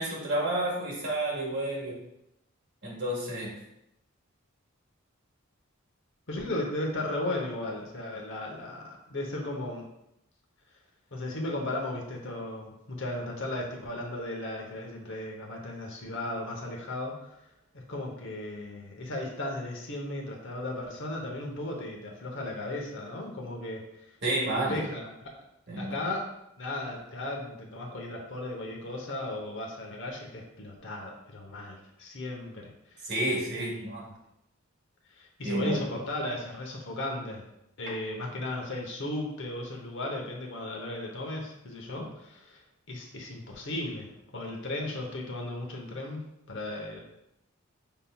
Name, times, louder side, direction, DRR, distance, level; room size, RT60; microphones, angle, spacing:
voice 1, 0.0-2.0 2.8-3.5 24.2-24.8 25.7-25.9 33.0-34.1 35.4-35.8, right 1 dB, 55° right, -4 dB, 1.7 m, -30 dB
voice 2, 6.3-9.9 11.1-17.4 17.7-23.9 24.4-25.4 25.8-26.3 26.6-33.1 33.5-33.9 35.1-37.4 37.8-42.6 42.9-47.0, left 1 dB, 65° left, 0 dB, 0.9 m, -36 dB
5.6 x 3.6 x 2.3 m, 0.82 s
head